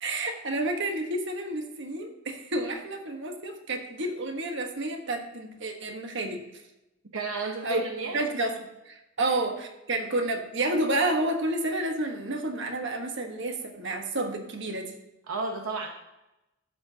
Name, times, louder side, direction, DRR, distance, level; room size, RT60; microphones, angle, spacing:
voice 1, 0.0-6.4 7.6-7.8 8.1-8.6 8.8-14.9, right 2 dB, 60° right, 4 dB, 1.3 m, -30 dB
voice 2, 7.1-8.2 9.2-9.3 15.3-15.9, right 3 dB, 85° right, 3 dB, 0.9 m, -32 dB
13.0 x 7.1 x 2.8 m, 0.94 s
head